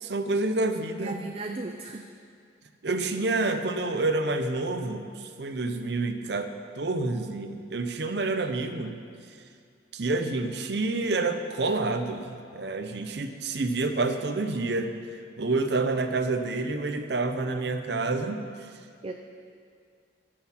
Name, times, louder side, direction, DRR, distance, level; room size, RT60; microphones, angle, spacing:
voice 1, 0.0-1.2 2.8-6.5 6.8-9.0 9.9-14.9 15.4-18.7, right 3 dB, 65° right, 7 dB, 0.7 m, -28 dB
voice 2, 1.0-2.1 19.0-19.1, right 2 dB, 30° right, 4 dB, 0.4 m, -35 dB
15.5 x 6.4 x 5.7 m, 2.3 s
head